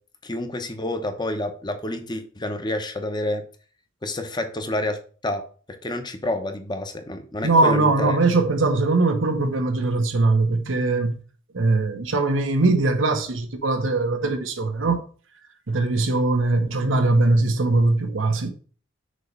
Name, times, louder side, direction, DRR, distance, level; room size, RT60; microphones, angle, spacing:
voice 1, 0.2-3.4 4.0-5.4 5.8-8.2, left 1 dB, 20° left, 0.9 m, -29 dB
voice 2, 7.4-11.2 11.5-15.0 15.7-18.5, right 2 dB, 80° right, 1.0 m, -21 dB
6.4 x 3.1 x 5.2 m
head